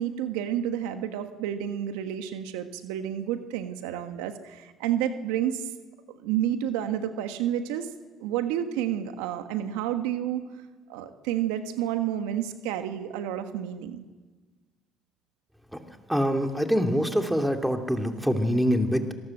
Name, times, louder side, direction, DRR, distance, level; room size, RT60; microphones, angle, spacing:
voice 1, 0.0-5.7 6.2-7.9 8.2-10.5 10.9-14.0, right 10 dB, 85° right, 8 dB, 1.4 m, -30 dB
voice 2, 16.1-19.1, equal, 5° right, 4 dB, 2.9 m, -24 dB
26.0 x 19.0 x 7.9 m, 1.3 s
supercardioid pair, 75°, 0 cm